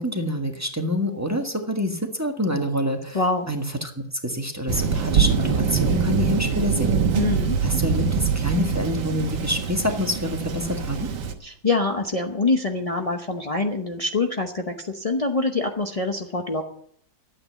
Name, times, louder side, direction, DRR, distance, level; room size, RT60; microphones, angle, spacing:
voice 1, 0.0-3.2 3.5-3.9 4.2-7.2 7.6-11.1, left 1 dB, 10° right, 3 dB, 1.2 m, -26 dB
voice 2, 3.1-3.5 7.1-7.6 11.4-16.6, left 3 dB, 45° left, 3 dB, 0.4 m, -25 dB
Thunder, 4.7-11.3, right 6 dB, 75° right, 2.0 m, -24 dB
12.5 x 8.7 x 8.3 m, 0.65 s
omnidirectional pair, 2.1 m